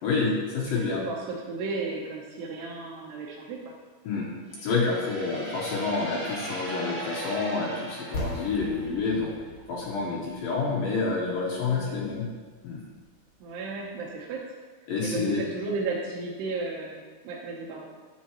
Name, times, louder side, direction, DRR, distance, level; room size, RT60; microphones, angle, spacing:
voice 1, 0.0-1.0 4.0-4.3 4.6-9.3 9.7-12.3 12.6-12.8 14.9-15.5, left 4 dB, 75° left, -4 dB, 2.2 m, -28 dB
voice 2, 0.6-3.6 11.7-12.0 13.4-14.4 15.0-17.9, right 3 dB, 75° right, -3 dB, 2.7 m, -34 dB
sound 1, 4.5-9.2, right 1 dB, 45° right, 2.9 m, -38 dB
sound 2, 8.1-13.9, left 1 dB, 50° left, 3.4 m, -41 dB
10.5 x 7.4 x 3.0 m, 1.4 s
omnidirectional pair, 5.3 m